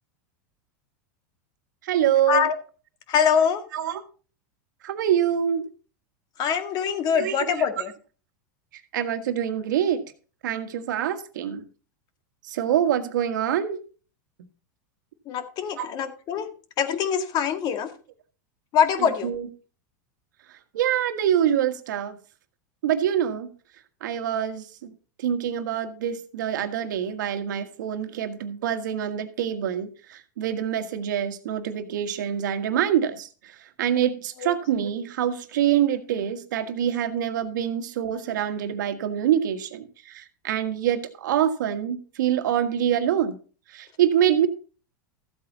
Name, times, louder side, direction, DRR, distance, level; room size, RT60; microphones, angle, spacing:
voice 1, 1.8-2.4 3.7-4.0 4.8-5.6 7.1-7.6 8.9-10.0 10.4-11.6 12.5-13.8 15.8-15.9 19.0-19.5 20.7-22.2 22.8-23.5 24.0-24.9 25.2-33.3 33.8-43.4 43.7-44.5, right 10 dB, 80° right, 8 dB, 1.6 m, -25 dB
voice 2, 3.1-3.6 6.4-7.9 15.3-16.5 16.8-17.9 18.7-19.3 34.4-34.5, left 7 dB, 45° left, 8 dB, 2.0 m, -23 dB
14.5 x 8.3 x 4.1 m, 0.37 s
hypercardioid pair, 115°, 10 cm